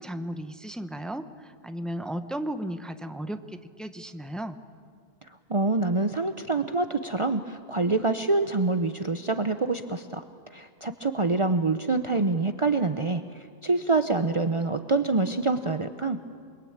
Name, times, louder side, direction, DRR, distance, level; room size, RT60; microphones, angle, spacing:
voice 1, 0.0-3.4 3.8-4.6, right 1 dB, ahead, 9 dB, 1.0 m, -34 dB
voice 2, 5.2-10.2 10.5-16.2, right 3 dB, 35° right, 9 dB, 0.8 m, -26 dB
28.5 x 22.0 x 8.7 m, 2.1 s
omnidirectional pair, 1.0 m